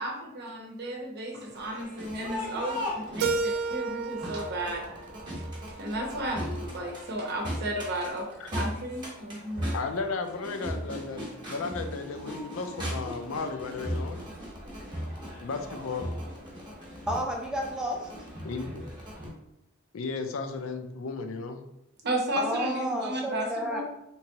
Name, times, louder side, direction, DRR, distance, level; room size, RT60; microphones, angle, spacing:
voice 1, 0.0-4.9 5.8-9.7 22.0-23.8, right 1 dB, 50° right, 1 dB, 0.7 m, -33 dB
Crowd, 1.5-19.3, equal, 20° right, 0.9 m, -38 dB
Keyboard (musical), 3.2-6.1, right 4 dB, 75° right, 0.3 m, -33 dB
voice 2, 9.7-14.2 15.4-16.1 18.4-18.8 19.9-21.6, left 4 dB, 70° left, 6 dB, 0.4 m, -34 dB
voice 3, 17.1-18.1 22.4-23.8, equal, 5° right, -1 dB, 0.5 m, -31 dB
3.4 x 3.0 x 2.8 m, 0.83 s
head